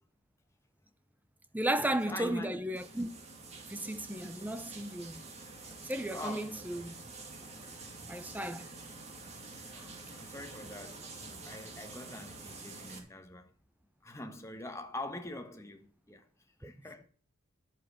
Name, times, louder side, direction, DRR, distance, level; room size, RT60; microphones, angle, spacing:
voice 1, 1.5-3.1 3.7-5.1 5.9-6.9 8.1-8.7 16.6-16.7, right 1 dB, 5° right, 0.6 m, -34 dB
voice 2, 2.1-2.6 6.1-6.6 9.7-13.5 14.0-16.3 16.6-17.1, left 1 dB, 15° left, 1.3 m, -44 dB
sound 1, 2.8-13.0, right 3 dB, 30° right, 2.5 m, -48 dB
11.0 x 7.6 x 5.9 m
head